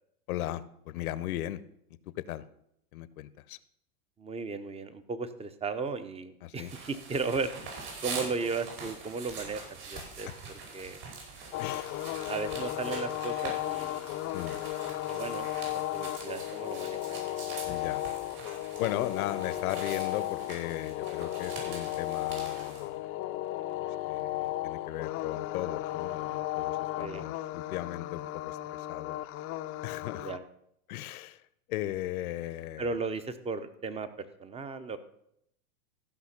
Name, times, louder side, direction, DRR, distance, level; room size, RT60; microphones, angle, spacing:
voice 1, 0.3-1.6 2.2-2.5 2.9-3.6 6.4-6.7 10.3-10.4 11.6-12.1 14.3-14.6 17.6-18.0 18.8-23.1 23.8-29.2 29.8-30.3 30.9-31.4 31.7-32.9, left 14 dB, 70° left, 17 dB, 0.8 m, -37 dB
voice 2, 4.2-9.6 9.9-10.3 10.7-11.0 12.3-14.1 15.1-15.5 15.9-17.0 27.0-27.3 30.2-30.4 32.8-34.1 34.4-35.0, right 4 dB, 15° right, 12 dB, 0.7 m, -35 dB
sound 1, 6.6-22.9, right 4 dB, 55° right, 5.4 m, -44 dB
sound 2, 11.5-30.4, left 15 dB, 30° left, 0.5 m, -35 dB
14.5 x 5.8 x 5.8 m, 0.75 s
hypercardioid pair, 110°, 46 cm